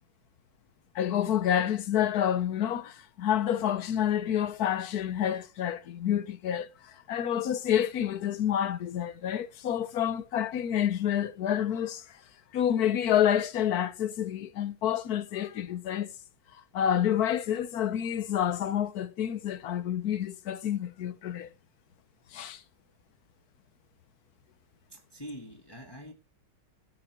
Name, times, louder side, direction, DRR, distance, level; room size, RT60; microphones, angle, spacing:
voice 1, 0.9-12.0 12.5-16.1 16.7-21.5 22.3-22.6, left 10 dB, 55° left, 1.2 m, -28 dB
voice 2, 24.9-26.1, equal, 10° left, 2.4 m, -44 dB
13.0 x 7.5 x 5.9 m
omnidirectional pair, 2.3 m